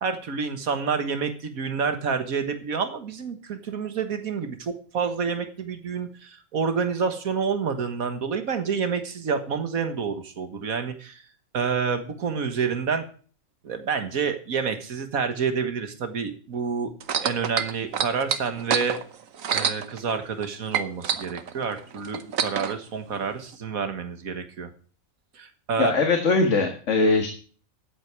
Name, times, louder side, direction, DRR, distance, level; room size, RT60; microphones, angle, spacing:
voice 1, 0.0-11.2 11.5-13.1 13.6-16.9 17.2-19.0 19.5-24.7 25.4-26.0, right 6 dB, 90° right, 8 dB, 1.9 m, -28 dB
sound 1, 17.0-20.5 20.7-22.7 23.5-23.6, right 7 dB, 70° right, 1.4 m, -27 dB
voice 2, 25.8-27.3, left 3 dB, 60° left, 4 dB, 1.9 m, -21 dB
13.5 x 8.3 x 4.7 m, 0.42 s
omnidirectional pair, 1.4 m